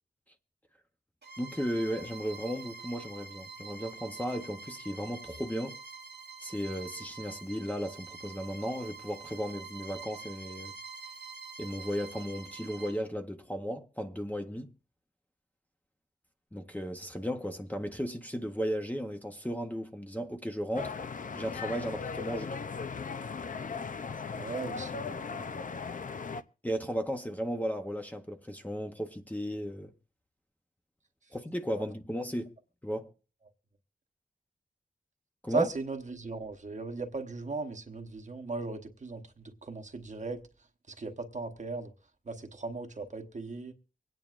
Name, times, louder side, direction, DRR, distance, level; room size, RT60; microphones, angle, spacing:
Bowed string instrument, 1.2-13.0, right 4 dB, 80° right, 1.2 m, -46 dB
voice 1, 1.4-5.8 6.4-10.7 11.6-14.7 16.5-20.9 21.3-22.6 26.6-29.9 31.3-32.5 32.8-33.1 35.4-35.7, equal, 10° left, 0.8 m, -35 dB
sound 1, 20.8-26.4, left 5 dB, 50° left, 0.5 m, -38 dB
voice 2, 24.4-25.5 31.7-31.8 35.5-40.4 40.9-41.9 42.3-43.7, right 3 dB, 45° right, 1.0 m, -37 dB
24.5 x 9.1 x 2.5 m
wide cardioid pair, 120°, 17 cm